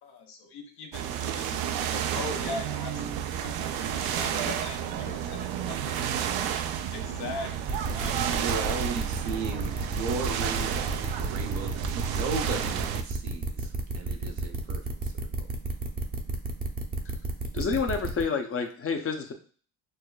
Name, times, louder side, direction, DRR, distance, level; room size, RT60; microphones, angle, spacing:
voice 1, 0.0-6.6 6.9-8.5, left 3 dB, 60° left, 2 dB, 1.1 m, -41 dB
sound 1, 0.9-13.0, right 9 dB, 55° right, 0.5 m, -31 dB
voice 2, 5.8-6.4 8.4-15.1, right 4 dB, 75° right, 4 dB, 0.9 m, -36 dB
sound 2, 7.7-18.2, right 3 dB, 20° right, 0.7 m, -32 dB
voice 3, 17.5-19.3, left 5 dB, 30° left, 5 dB, 0.8 m, -29 dB
6.3 x 2.1 x 2.3 m, 0.42 s
hypercardioid pair, 65°, 44 cm